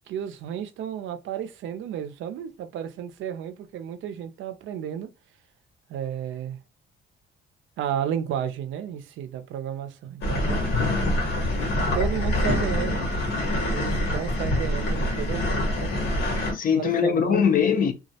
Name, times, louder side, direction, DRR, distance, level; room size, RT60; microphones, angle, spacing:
voice 1, 0.1-5.1 5.9-6.6 7.8-11.0 11.9-13.1 13.5-15.9 16.7-17.4, right 9 dB, 75° right, 0.4 m, -32 dB
sound 1, 10.2-16.5, left 1 dB, 85° left, 1.1 m, -25 dB
voice 2, 10.6-11.2 16.4-17.9, left 7 dB, 45° left, 0.5 m, -23 dB
2.2 x 2.0 x 2.7 m
cardioid pair, 90°, 20 cm